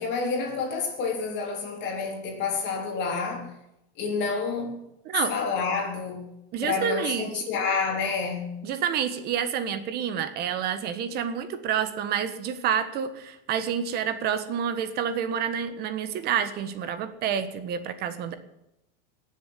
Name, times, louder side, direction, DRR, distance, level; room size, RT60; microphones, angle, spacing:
voice 1, 0.0-3.5 4.0-4.8 5.3-6.2 6.6-8.5, left 5 dB, 40° left, 2 dB, 3.9 m, -29 dB
voice 2, 6.5-7.3 8.6-18.3, right 8 dB, 35° right, 11 dB, 1.5 m, -28 dB
17.5 x 7.4 x 9.8 m, 0.86 s
supercardioid pair, 160°, 29 cm